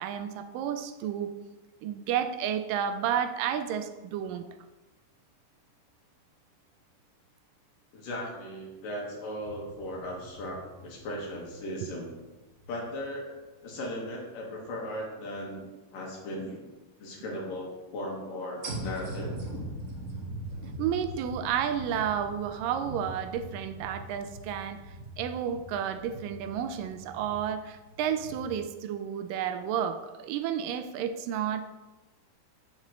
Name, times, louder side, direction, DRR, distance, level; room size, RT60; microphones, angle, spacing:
voice 1, 0.0-1.3 1.8-4.5 11.8-11.9 20.8-24.8 25.2-31.6, right 9 dB, 80° right, 9 dB, 2.1 m, -31 dB
voice 2, 7.9-12.1 12.7-16.6 17.0-19.4, left 1 dB, 70° left, -2 dB, 3.1 m, -37 dB
sound 1, 9.4-13.1 13.6-13.7 18.6-28.5, right 1 dB, 45° right, 1.1 m, -42 dB
15.0 x 5.2 x 3.1 m, 1.1 s
omnidirectional pair, 4.2 m